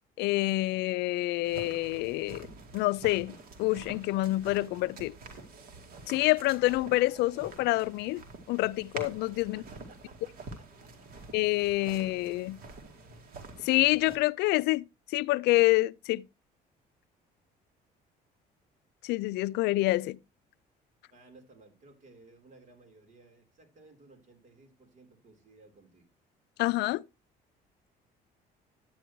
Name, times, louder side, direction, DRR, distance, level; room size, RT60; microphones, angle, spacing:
voice 1, 0.2-2.5 2.7-5.1 6.1-8.2 8.5-9.6 11.3-12.6 13.6-16.3 19.0-20.2 26.6-27.0, left 19 dB, 85° left, 0.4 m, -27 dB
sound 1, 1.4-14.2, right 3 dB, 65° right, 2.1 m, -47 dB
voice 2, 9.5-11.1 21.1-26.1, right 3 dB, 45° right, 3.3 m, -58 dB
10.0 x 9.1 x 3.0 m
cardioid pair, 110°, 17 cm